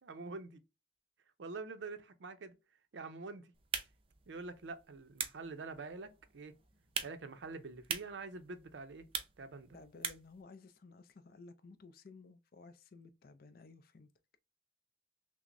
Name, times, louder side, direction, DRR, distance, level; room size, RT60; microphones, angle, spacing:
voice 1, 0.0-0.6 1.4-2.6 2.9-3.5 4.3-6.5 7.0-9.1 9.4-9.8, right 3 dB, 85° right, 0.6 m, -46 dB
sound 1, 3.5-10.4, right 6 dB, 30° right, 0.5 m, -44 dB
voice 2, 9.7-14.1, left 3 dB, 55° left, 0.5 m, -56 dB
5.8 x 2.0 x 2.5 m
head